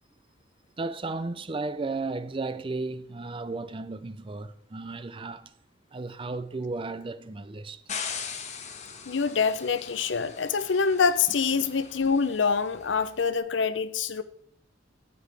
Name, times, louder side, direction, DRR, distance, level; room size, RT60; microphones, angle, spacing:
voice 1, 0.8-5.5 5.9-7.8, right 3 dB, 30° right, 0.5 m, -34 dB
sound 1, 7.9-13.0, left 6 dB, 40° left, 1.2 m, -40 dB
voice 2, 9.1-14.2, left 5 dB, 80° left, 0.7 m, -25 dB
12.5 x 8.5 x 3.4 m
head